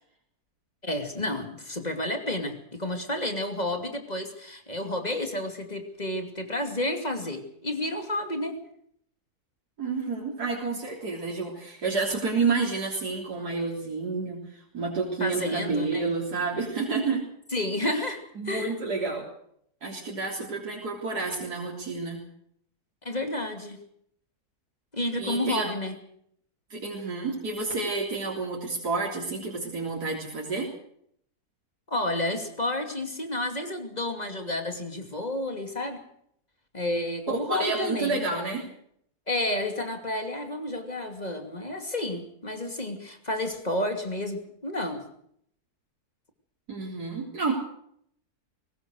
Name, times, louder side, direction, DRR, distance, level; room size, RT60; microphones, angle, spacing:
voice 1, 0.8-8.6 15.2-16.1 17.5-18.2 18.4-18.7 23.0-23.8 24.9-26.0 31.9-36.0 36.7-38.3 39.3-45.0, left 1 dB, 25° left, 5 dB, 2.8 m, -31 dB
voice 2, 9.8-17.2 17.8-18.0 18.4-19.3 19.8-22.2 25.2-25.7 26.7-30.7 37.3-38.6 46.7-47.5, right 4 dB, 85° right, -3 dB, 4.1 m, -30 dB
22.0 x 19.0 x 6.5 m, 0.69 s
omnidirectional pair, 1.6 m